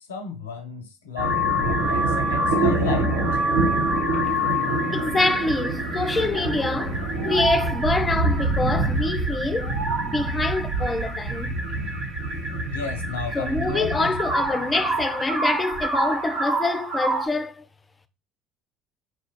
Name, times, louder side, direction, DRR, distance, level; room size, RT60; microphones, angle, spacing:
voice 1, 0.1-3.1 12.7-14.1, left 5 dB, 80° left, 0.5 m, -33 dB
sound 1, 1.2-17.3, right 1 dB, 80° right, 1.3 m, -25 dB
voice 2, 4.9-9.8 10.0-11.5 13.3-17.7, left 2 dB, 25° left, 0.5 m, -25 dB
4.1 x 2.4 x 2.9 m
figure-of-eight pair, 60°, 0 cm